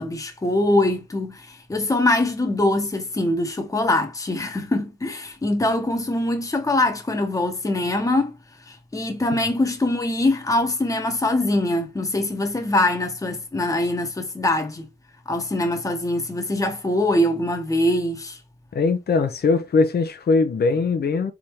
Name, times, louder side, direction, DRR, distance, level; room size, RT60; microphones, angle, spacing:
voice 1, 0.0-8.3 8.7-14.9 15.3-18.4, left 1 dB, 20° left, 0.9 m, -23 dB
voice 2, 18.7-21.3, left 4 dB, 65° left, 0.7 m, -20 dB
4.1 x 3.6 x 3.1 m
wide cardioid pair, 160°, 17 cm